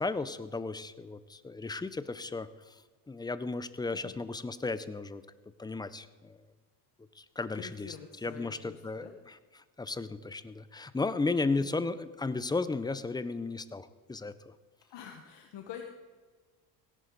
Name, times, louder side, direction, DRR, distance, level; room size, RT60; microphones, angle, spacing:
voice 1, 0.0-2.8 3.1-5.2 5.6-6.4 7.1-8.0 8.2-14.5, left 3 dB, 10° left, 14 dB, 0.5 m, -35 dB
voice 2, 7.5-9.1 11.6-12.0 14.9-15.8, left 8 dB, 60° left, 4 dB, 1.4 m, -47 dB
17.0 x 11.0 x 4.0 m, 1.4 s
supercardioid pair, 95°, 49 cm